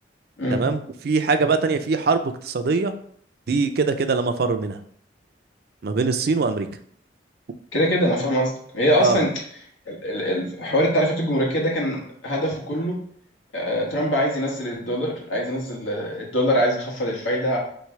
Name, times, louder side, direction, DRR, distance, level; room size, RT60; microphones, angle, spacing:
voice 1, 0.5-2.9 3.5-4.8 5.8-6.7 9.0-9.2, right 4 dB, 55° right, 9 dB, 0.4 m, -22 dB
voice 2, 7.7-9.3 9.9-13.0 13.5-17.6, equal, 90° left, -2 dB, 1.4 m, -23 dB
3.3 x 3.1 x 4.6 m, 0.63 s
head